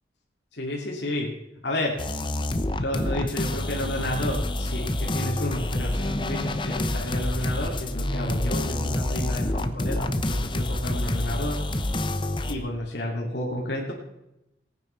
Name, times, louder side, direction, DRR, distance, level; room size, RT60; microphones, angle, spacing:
voice 1, 0.5-1.3 1.6-1.9 2.8-11.6 12.5-13.9, left 1 dB, 80° left, -1 dB, 2.6 m, -31 dB
sound 1, 2.0-12.5, left 1 dB, 25° left, 0.8 m, -27 dB
18.5 x 9.3 x 5.8 m, 0.90 s
head